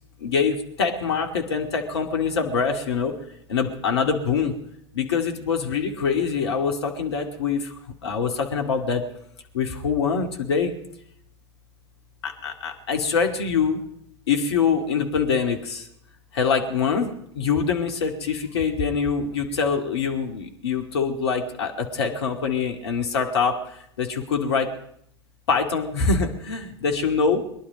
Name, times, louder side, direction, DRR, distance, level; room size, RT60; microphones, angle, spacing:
voice 1, 0.2-3.1 3.5-4.5 4.9-7.8 8.0-9.0 9.5-10.7 12.2-13.8 14.3-15.9 16.3-24.7 25.5-27.6, left 5 dB, 65° left, 4 dB, 2.2 m, -24 dB
22.5 x 11.5 x 5.1 m, 0.73 s
figure-of-eight pair, 85°, 15 cm